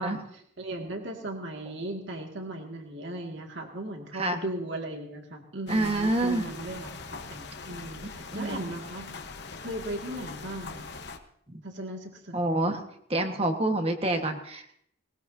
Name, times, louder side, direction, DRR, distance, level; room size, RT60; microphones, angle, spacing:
voice 1, 0.0-6.9 7.3-9.1 9.6-10.9 11.6-12.4, right 1 dB, 60° right, 2 dB, 2.1 m, -37 dB
sound 1, 5.7-11.2, left 4 dB, 55° left, 1.1 m, -42 dB
voice 2, 5.7-6.4 8.3-8.7 11.5-11.6 12.3-12.8 13.1-14.8, right 2 dB, 30° right, 5 dB, 1.4 m, -27 dB
19.5 x 19.0 x 2.7 m, 0.68 s
head